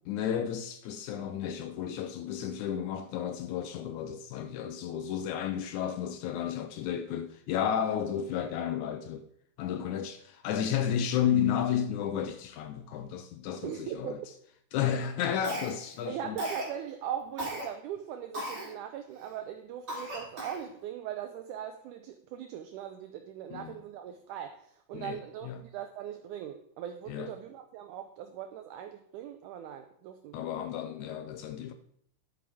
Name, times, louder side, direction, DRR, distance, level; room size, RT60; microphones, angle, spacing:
voice 1, 0.1-9.2 9.6-14.2 14.7-16.4 23.5-23.8 24.9-25.6 27.1-27.3 30.3-31.7, left 9 dB, 80° left, 1.8 m, -32 dB
voice 2, 13.6-14.2 16.1-30.5, right 10 dB, 80° right, 1.9 m, -40 dB
Cough, 15.4-16.0 16.4-16.7 17.4-17.6 18.3-18.7 19.2-19.3 19.9-20.7, equal, 25° right, 2.7 m, -36 dB
11.0 x 8.5 x 3.5 m
omnidirectional pair, 3.9 m